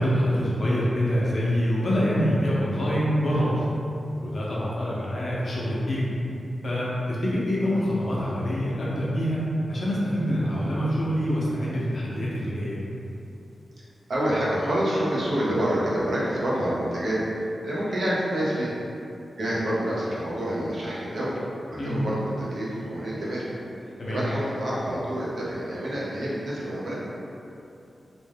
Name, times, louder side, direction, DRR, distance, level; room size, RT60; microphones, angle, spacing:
voice 1, 0.0-3.6 4.2-6.1 6.6-12.8 21.8-22.0 24.0-24.2, equal, 45° left, -7 dB, 0.5 m, -25 dB
voice 2, 14.1-17.2 17.6-18.7 19.3-21.3 21.7-23.4 24.1-26.9, right 1 dB, 55° right, -7 dB, 0.6 m, -27 dB
2.5 x 2.2 x 3.3 m, 2.7 s
wide cardioid pair, 170°, 0 cm